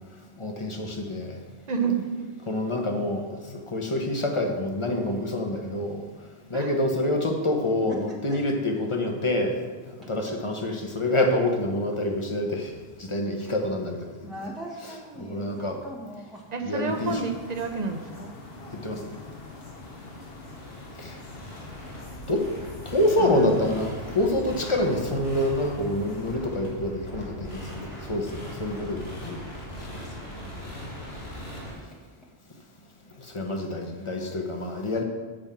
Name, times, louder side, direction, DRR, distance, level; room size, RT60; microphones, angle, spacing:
voice 1, 0.4-1.4 2.5-6.0 6.5-9.6 10.1-14.2 15.2-15.8 16.6-17.2 18.8-19.0 21.0-21.2 22.3-22.4 22.8-29.4 33.2-35.0, left 1 dB, 30° left, 2 dB, 1.1 m, -27 dB
voice 2, 1.7-2.1 6.5-6.8 16.5-18.3 23.2-23.5, right 5 dB, 45° right, 5 dB, 1.0 m, -29 dB
voice 3, 7.9-8.4 10.0-10.1 14.2-16.5 30.1-30.6 31.9-32.3, right 1 dB, ahead, -4 dB, 1.0 m, -42 dB
sound 1, 16.9-26.4, left 2 dB, 65° left, 1.4 m, -45 dB
sound 2, 18.4-31.7, equal, 90° left, 2.7 m, -40 dB
7.6 x 5.3 x 7.4 m, 1.4 s
omnidirectional pair, 1.0 m